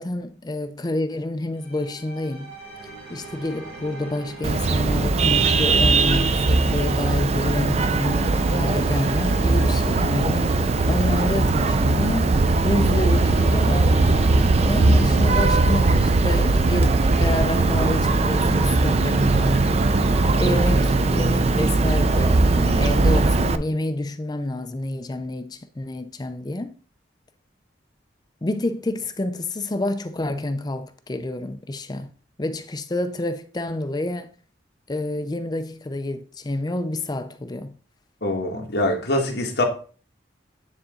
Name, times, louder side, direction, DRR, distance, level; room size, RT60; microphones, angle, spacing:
voice 1, 0.0-2.6 3.1-10.6 10.9-12.3 12.6-14.3 14.6-19.7 20.4-26.8 28.4-32.1 32.4-34.3 34.9-37.8, left 1 dB, 20° left, 0.5 m, -28 dB
sound 1, 1.6-20.9, right 2 dB, 60° right, 2.1 m, -39 dB
Vehicle horn car horn honking, 4.4-23.6, right 3 dB, 35° right, 0.4 m, -19 dB
voice 2, 38.2-39.6, left 1 dB, 60° left, 1.6 m, -24 dB
9.7 x 3.9 x 3.8 m
head